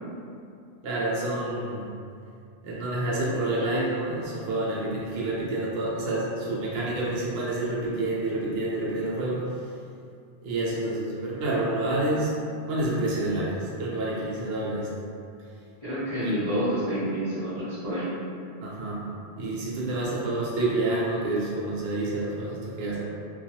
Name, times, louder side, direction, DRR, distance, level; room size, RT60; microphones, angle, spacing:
voice 1, 0.8-1.9 2.6-9.4 10.4-12.3 12.7-14.9 16.1-16.6 18.6-19.0 19.4-23.0, right 2 dB, 65° right, -5 dB, 0.8 m, -28 dB
voice 2, 15.8-18.1, equal, 30° left, -13 dB, 0.6 m, -28 dB
2.3 x 2.2 x 2.8 m, 2.4 s
omnidirectional pair, 1.2 m